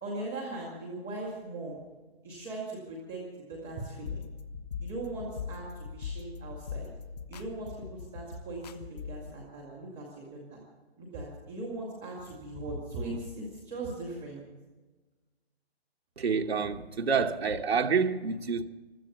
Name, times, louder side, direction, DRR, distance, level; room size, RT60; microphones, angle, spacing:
voice 1, 0.0-1.8 2.2-3.2 3.5-4.2 4.8-6.9 7.3-10.6 11.0-14.4, right 2 dB, ahead, 0.4 m, -39 dB
sound 1, 4.1-9.3, left 6 dB, 40° left, 1.1 m, -40 dB
voice 2, 16.2-18.6, right 5 dB, 75° right, 1.1 m, -28 dB
16.0 x 12.5 x 6.7 m
figure-of-eight pair, 150°, 31 cm